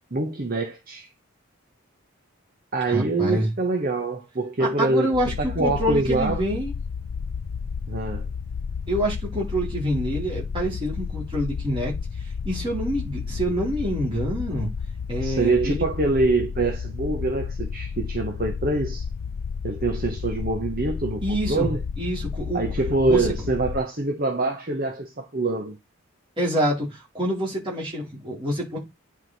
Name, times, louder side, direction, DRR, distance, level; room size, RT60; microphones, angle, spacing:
voice 1, 0.1-1.1 2.7-5.1 5.4-6.4 7.9-8.3 15.2-19.0 19.6-21.8 22.5-25.8, right 2 dB, 40° right, 1.0 m, -25 dB
voice 2, 2.9-3.5 4.6-6.7 8.9-11.9 12.2-14.7 15.1-15.8 21.2-21.7 22.0-22.6 23.1-23.3 26.4-28.8, equal, 25° right, 3.7 m, -26 dB
sound 1, 5.1-23.8, left 6 dB, 65° left, 0.4 m, -32 dB
9.7 x 4.6 x 4.1 m
head